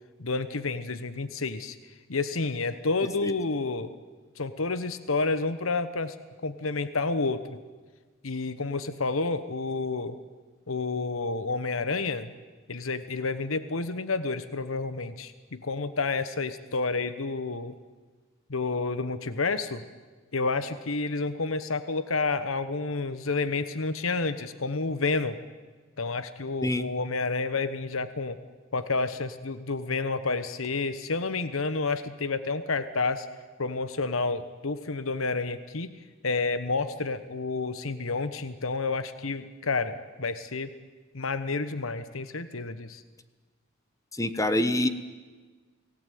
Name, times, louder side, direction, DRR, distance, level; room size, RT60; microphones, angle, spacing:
voice 1, 0.2-1.8 2.1-3.9 4.4-6.1 6.4-7.6 8.2-10.2 10.7-12.3 12.7-17.7 18.5-19.8 20.3-25.4 26.0-28.4 28.7-33.3 33.6-35.9 36.2-40.7 41.1-43.0, left 3 dB, 80° left, 12 dB, 1.2 m, -30 dB
voice 2, 44.2-44.9, left 1 dB, 15° left, 11 dB, 1.1 m, -25 dB
29.5 x 19.0 x 9.3 m, 1.4 s
head